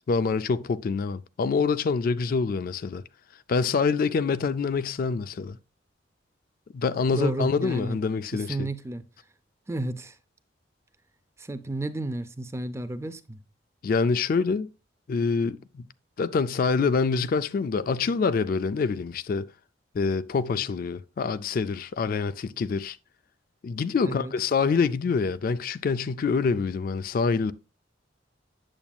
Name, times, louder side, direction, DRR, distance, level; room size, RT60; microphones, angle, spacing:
voice 1, 0.0-3.0 3.5-5.6 6.7-8.7 13.8-14.7 15.1-15.8 16.2-19.5 19.9-23.0 23.6-27.5, left 5 dB, 50° left, 0.3 m, -26 dB
voice 2, 7.1-8.0 8.3-9.0 9.7-10.2 11.4-13.4 24.0-24.3, right 2 dB, 15° right, 0.4 m, -32 dB
8.7 x 7.0 x 2.3 m
head